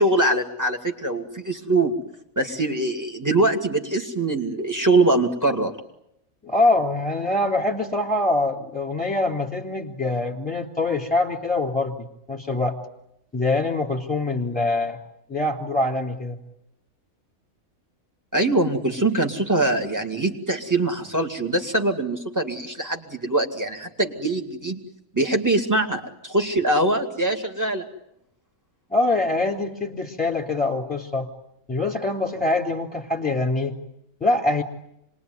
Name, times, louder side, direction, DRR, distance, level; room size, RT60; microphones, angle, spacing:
voice 1, 0.0-2.0 2.4-5.7 18.3-24.8 25.1-27.9, right 2 dB, 10° right, 3 dB, 2.3 m, -23 dB
voice 2, 6.4-12.8 13.3-15.0 15.3-16.4 28.9-31.3 31.7-33.8 34.2-34.6, left 2 dB, 5° left, 2 dB, 3.2 m, -24 dB
26.0 x 21.0 x 9.6 m, 0.82 s
omnidirectional pair, 1.5 m